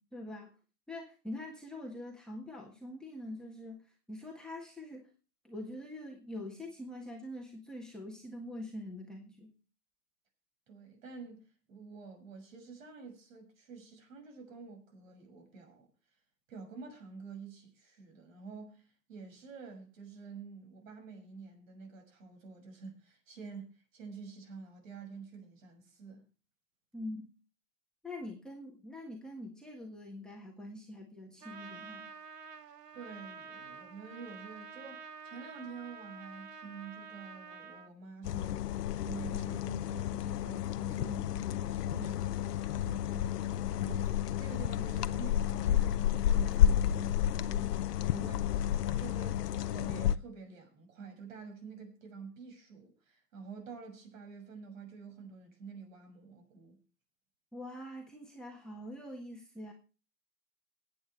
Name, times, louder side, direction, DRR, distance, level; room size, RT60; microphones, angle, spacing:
voice 1, 0.1-0.5 0.9-5.1 5.4-9.5 26.9-27.3 28.0-32.1 57.5-59.7, left 1 dB, ahead, 1.6 m, -44 dB
voice 2, 10.7-15.9 16.5-26.2 32.9-56.8, right 5 dB, 55° right, 6.6 m, -48 dB
Trumpet, 31.4-37.9, right 5 dB, 75° right, 1.9 m, -48 dB
sound 1, 38.2-50.2, left 11 dB, 75° left, 0.9 m, -31 dB
22.0 x 9.0 x 3.3 m
hypercardioid pair, 145°, 48 cm